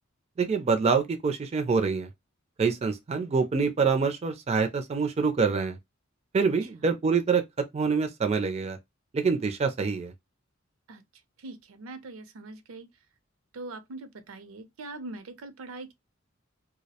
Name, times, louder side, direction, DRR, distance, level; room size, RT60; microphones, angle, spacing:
voice 1, 0.4-2.1 2.6-5.8 6.3-7.4 7.7-8.8 9.1-10.1, right 5 dB, 30° right, 0.3 m, -25 dB
voice 2, 11.4-12.9 13.5-15.9, right 2 dB, 85° right, 0.5 m, -42 dB
2.3 x 2.0 x 2.7 m
head